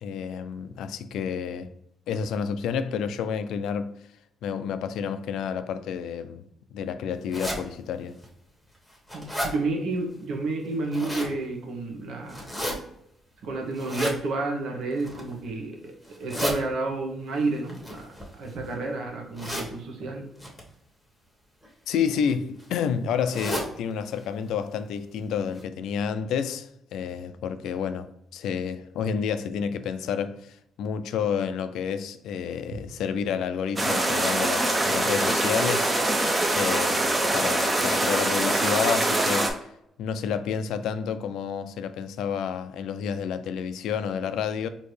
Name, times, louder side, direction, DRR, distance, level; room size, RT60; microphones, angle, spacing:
voice 1, 0.0-1.7 2.1-4.0 4.4-6.4 6.7-8.2 21.9-39.5 40.0-44.7, left 7 dB, 85° left, 0.3 m, -30 dB
sound 1, 7.3-7.6 8.2-8.3 8.7-9.5 10.6-11.3 12.3-12.7 13.7-14.2 14.9-15.3 16.0-16.5 17.7-18.7 19.3-19.7 20.4-20.6 21.6-21.9 22.2-22.3 22.6-22.7 23.2-23.7 24.1-24.2 24.5-24.6 25.2-25.3 25.6-25.7, equal, 5° left, 1.2 m, -32 dB
voice 2, 9.1-12.5 13.4-15.9 16.2-20.3 32.7-32.8, right 3 dB, 75° right, 1.0 m, -30 dB
sound 2, 33.8-39.5, right 1 dB, 25° right, 0.7 m, -24 dB
4.3 x 2.8 x 3.2 m
cardioid pair, 90°, 0 cm